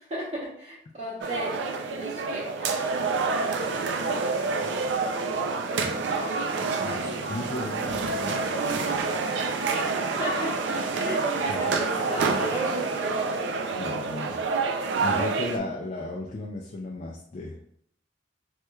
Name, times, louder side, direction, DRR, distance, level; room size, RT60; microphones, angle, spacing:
voice 1, 0.0-1.6 1.9-2.7 9.8-9.9 10.2-13.2, right 1 dB, 40° right, -9 dB, 0.8 m, -35 dB
sound 1, 1.2-15.6, right 4 dB, 80° right, 0.4 m, -27 dB
voice 2, 6.8-8.4 11.5-11.8 13.8-14.4 15.0-17.6, left 2 dB, 40° left, 0 dB, 0.4 m, -35 dB
3.2 x 3.0 x 2.3 m, 0.65 s
head